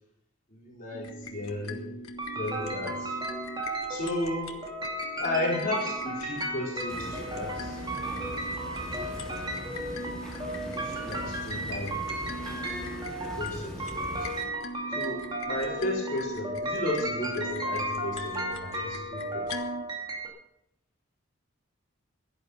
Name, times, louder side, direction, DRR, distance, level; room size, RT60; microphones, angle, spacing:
voice 1, 0.5-1.9 2.3-3.2 3.9-4.5 5.2-8.4 8.7-9.5 10.5-11.9 13.4-14.3 15.0-15.2 15.4-19.4, left 1 dB, 40° left, -4 dB, 4.4 m, -34 dB
sound 1, 0.9-19.8, left 1 dB, 90° left, 1.7 m, -42 dB
sound 2, 2.2-20.3, right 1 dB, 20° right, 2.6 m, -35 dB
sound 3, 6.9-14.4, equal, 5° left, 3.7 m, -41 dB
16.5 x 11.5 x 5.6 m, 0.81 s
head